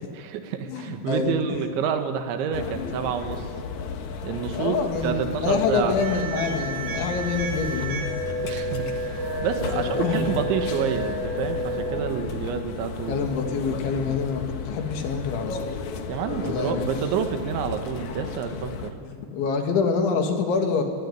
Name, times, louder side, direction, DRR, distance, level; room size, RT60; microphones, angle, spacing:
voice 1, 0.1-3.5 4.2-4.8 5.0-6.0 8.4-13.3 13.7-13.8 16.1-19.0, right 7 dB, 85° right, 7 dB, 3.9 m, -28 dB
voice 2, 0.7-1.4 4.5-8.0 10.0-10.4 13.1-15.6 16.4-16.9 19.0-20.8, left 5 dB, 85° left, 4 dB, 4.9 m, -26 dB
sound 1, 2.5-18.9, left 5 dB, 60° left, 2.1 m, -34 dB
sound 2, 6.0-12.0, right 1 dB, 55° right, 5.1 m, -31 dB
28.0 x 19.5 x 9.7 m, 2.1 s
omnidirectional pair, 5.2 m